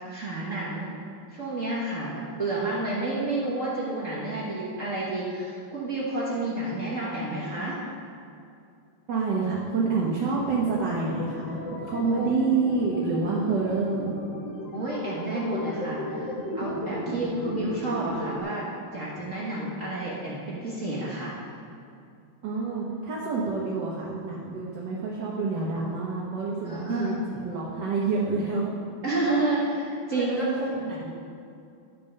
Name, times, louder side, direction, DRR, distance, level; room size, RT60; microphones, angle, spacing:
voice 1, 0.1-1.0 1.3-7.8 12.0-12.3 14.7-18.6 18.9-21.3 25.8-25.9 26.6-27.2 29.0-30.4, right 2 dB, 40° right, -6 dB, 1.7 m, -30 dB
voice 2, 9.1-14.1 22.4-28.7 30.1-31.1, right 4 dB, 60° right, -4 dB, 1.7 m, -28 dB
sound 1, 10.6-18.4, left 1 dB, 65° left, 1.8 m, -35 dB
11.0 x 5.3 x 6.5 m, 2.5 s
omnidirectional pair, 2.3 m